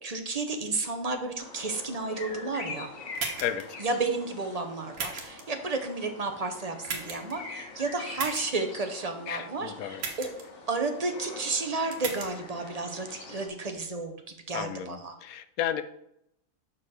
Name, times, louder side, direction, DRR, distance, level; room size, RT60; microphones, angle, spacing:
voice 1, 0.0-2.9 3.8-10.3 10.7-15.2, right 3 dB, 35° right, 5 dB, 0.8 m, -32 dB
sound 1, 1.4-13.5, left 3 dB, 75° left, 1.6 m, -44 dB
sound 2, 3.2-3.6 4.9-5.4 6.8-7.3 8.2-8.4 10.0-10.4 11.9-12.3, right 4 dB, 90° right, 1.6 m, -35 dB
voice 2, 9.3-10.0 14.5-15.8, left 10 dB, 90° left, 11 dB, 1.1 m, -33 dB
5.7 x 4.7 x 6.4 m, 0.76 s
omnidirectional pair, 1.5 m